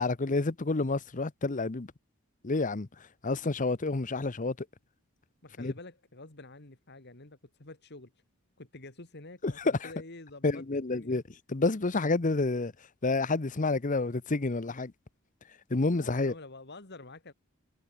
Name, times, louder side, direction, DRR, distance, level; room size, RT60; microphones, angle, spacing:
voice 1, 0.0-1.9 2.4-2.9 3.2-4.5 5.6-5.7 9.4-9.5 9.8-9.9 10.4-11.2 11.5-12.7 13.0-14.9 15.7-16.3, left 3 dB, 40° left, 0.8 m, -29 dB
voice 2, 5.4-8.1 8.6-11.2 15.9-17.3, left 2 dB, 55° left, 2.7 m, -48 dB
head